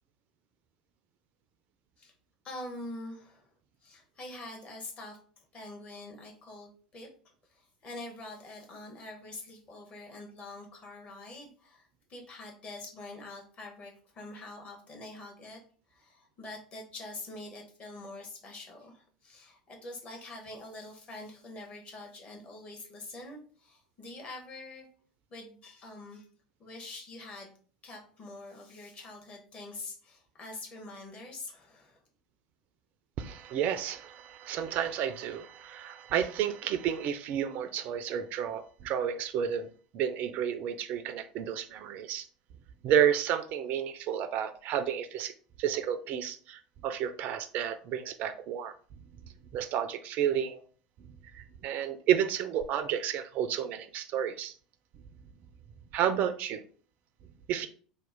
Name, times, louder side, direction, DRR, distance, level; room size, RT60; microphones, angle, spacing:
voice 1, 2.4-3.5 3.8-7.1 7.5-15.6 15.9-24.9 25.3-26.2 26.6-27.5 27.8-32.0, left 2 dB, 35° left, 1.1 m, -45 dB
voice 2, 33.2-39.7 39.9-42.3 42.8-45.3 45.6-48.7 49.5-50.6 51.3-54.5 55.9-56.6 57.5-57.7, right 9 dB, 45° right, 0.3 m, -31 dB
2.9 x 2.1 x 3.6 m
figure-of-eight pair, 75°, 4 cm